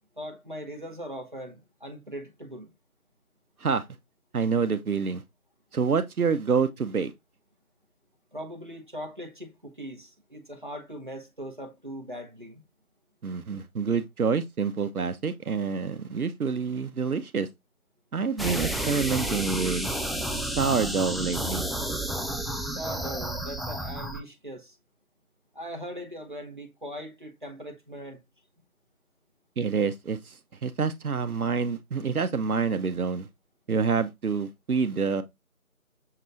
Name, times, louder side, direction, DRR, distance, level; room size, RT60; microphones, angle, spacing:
voice 1, 0.0-2.7 8.3-12.6 22.7-24.8 25.5-28.2, equal, 35° right, 0.7 m, -40 dB
voice 2, 4.3-5.2 5.7-7.1 13.2-17.5 18.1-19.9 20.4-21.6 29.6-33.3 33.7-35.2, right 5 dB, 80° right, 0.7 m, -27 dB
sound 1, 18.4-24.2, right 1 dB, ahead, 0.3 m, -31 dB
6.5 x 3.0 x 2.4 m
figure-of-eight pair, 170°, 44 cm